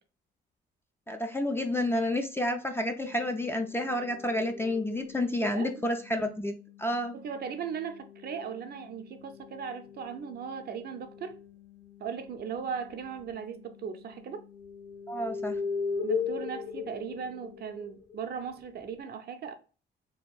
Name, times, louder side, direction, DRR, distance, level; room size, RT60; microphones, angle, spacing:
voice 1, 1.1-6.5 6.8-7.2 15.1-15.6, left 1 dB, 10° left, 0.3 m, -30 dB
sound 1, 3.0-17.6, left 18 dB, 80° left, 0.8 m, -55 dB
sound 2, 3.5-5.4 7.7-8.6 9.3-11.5 12.3-12.6 12.9-13.4 14.0-18.8, left 5 dB, 40° left, 0.9 m, -38 dB
voice 2, 7.1-11.4 12.0-14.4 16.0-19.5, right 7 dB, 55° right, 0.5 m, -38 dB
2.8 x 2.5 x 2.2 m
cardioid pair, 90°, 20 cm